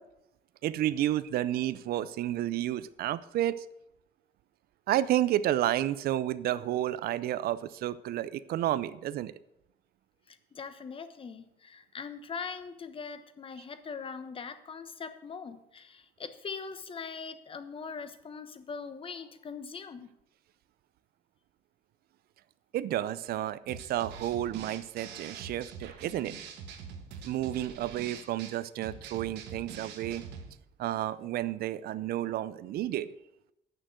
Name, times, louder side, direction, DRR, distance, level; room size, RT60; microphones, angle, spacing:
voice 1, 0.6-3.6 4.9-9.3 22.7-26.4 27.2-30.2 30.8-33.1, right 13 dB, 65° right, 16 dB, 0.6 m, -31 dB
voice 2, 10.3-20.1, left 5 dB, 30° left, 10 dB, 1.0 m, -41 dB
sound 1, 23.7-30.5, right 6 dB, 80° right, 1.4 m, -45 dB
9.0 x 6.4 x 8.0 m, 0.83 s
cardioid pair, 110°, 17 cm